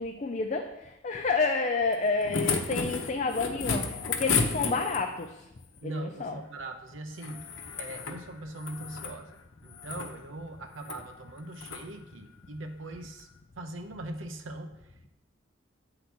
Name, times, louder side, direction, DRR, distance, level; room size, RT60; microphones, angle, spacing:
voice 1, 0.0-5.5 5.8-6.4, left 4 dB, 35° left, 4 dB, 0.4 m, -30 dB
sound 1, 1.9-5.2 7.2-8.2 8.5-9.2 9.7-10.1 10.8-11.0 11.6-11.8 13.2-13.3, left 5 dB, 80° left, 0.9 m, -32 dB
voice 2, 5.8-13.3 13.6-15.1, right 1 dB, 85° right, 6 dB, 0.8 m, -41 dB
8.2 x 3.9 x 6.0 m, 0.88 s
head